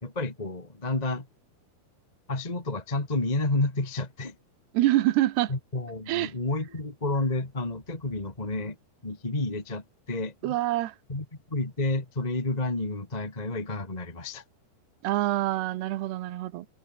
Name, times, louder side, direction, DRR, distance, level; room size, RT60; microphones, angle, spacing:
voice 1, 0.0-1.3 2.3-4.3 5.5-8.8 9.0-10.6 11.1-14.4, left 2 dB, 15° left, 1.9 m, -30 dB
voice 2, 4.7-5.5 6.1-6.3 10.4-10.9 15.0-16.7, right 15 dB, 85° right, 3.2 m, -25 dB
omnidirectional pair, 4.8 m